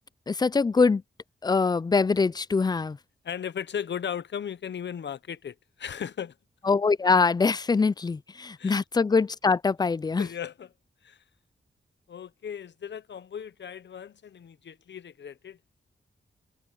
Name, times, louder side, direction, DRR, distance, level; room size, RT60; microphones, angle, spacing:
voice 1, 0.3-1.0 1.4-3.0 6.6-10.3, left 4 dB, 20° left, 0.4 m, -23 dB
voice 2, 3.2-6.3 8.6-8.8 10.2-10.7 11.0-11.2 12.1-15.6, left 8 dB, 70° left, 0.8 m, -36 dB
wide cardioid pair, 105°, 19 cm